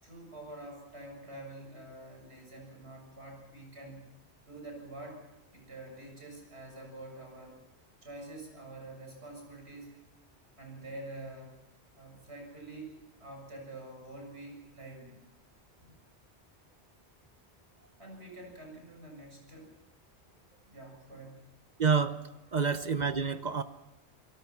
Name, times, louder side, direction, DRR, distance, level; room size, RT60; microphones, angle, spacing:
voice 1, 0.0-4.1 4.5-5.3 5.5-7.6 8.0-10.0 10.6-11.5 12.0-15.2 15.8-16.0 18.0-19.8 20.7-21.6, right 2 dB, 75° right, 2 dB, 7.3 m, -47 dB
voice 2, 21.8-22.2 22.5-23.6, right 6 dB, 45° right, 10 dB, 0.9 m, -28 dB
29.0 x 18.5 x 6.0 m, 0.98 s
omnidirectional pair, 1.1 m